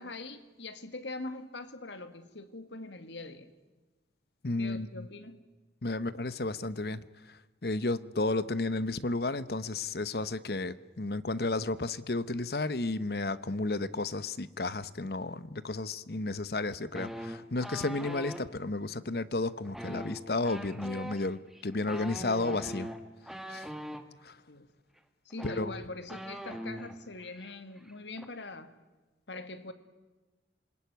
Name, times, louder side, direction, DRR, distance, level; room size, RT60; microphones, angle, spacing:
voice 1, 0.0-3.5 4.6-5.4 24.5-24.7 25.3-28.7 29.3-29.7, left 2 dB, 85° left, 2.1 m, -43 dB
voice 2, 4.4-5.1 5.8-22.9 23.5-23.7 24.2-24.4 25.4-25.7, left 2 dB, 60° left, 0.9 m, -33 dB
sound 1, 17.0-18.4 19.7-24.0 25.0-25.1 25.3-27.0 27.2-27.5 27.8-28.3, equal, ahead, 1.7 m, -41 dB
27.5 x 21.0 x 9.4 m
head